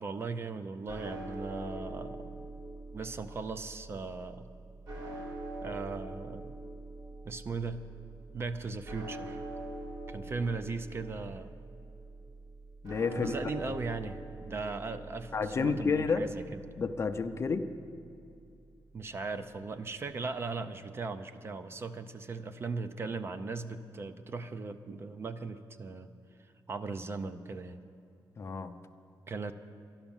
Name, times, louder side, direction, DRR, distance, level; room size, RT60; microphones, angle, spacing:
voice 1, 0.0-2.5 2.9-4.5 5.6-6.5 7.2-7.8 8.3-9.4 10.1-11.5 13.1-16.4 18.9-26.1 26.7-27.8 29.3-29.5, right 4 dB, 30° right, 10 dB, 0.5 m, -38 dB
sound 1, 0.9-19.1, right 2 dB, 65° right, 3.1 m, -44 dB
voice 2, 12.8-13.3 15.3-16.2 16.8-17.7 28.4-28.7, left 5 dB, 35° left, 9 dB, 0.5 m, -30 dB
12.0 x 11.5 x 7.1 m, 2.5 s
wide cardioid pair, 165°, 8 cm